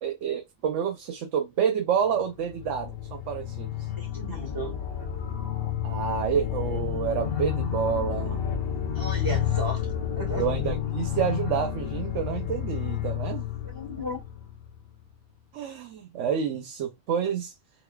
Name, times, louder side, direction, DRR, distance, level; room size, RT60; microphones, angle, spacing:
voice 1, 0.0-3.9 4.3-4.5 5.8-8.4 9.3-9.4 10.3-13.5 15.5-17.5, right 8 dB, 80° right, 1.0 m, -29 dB
sound 1, 2.2-15.0, left 9 dB, 60° left, 0.8 m, -30 dB
voice 2, 3.9-4.8 8.9-9.8 10.1-10.5 13.6-14.2, right 1 dB, 15° right, 1.8 m, -34 dB
4.0 x 2.6 x 2.2 m
omnidirectional pair, 1.2 m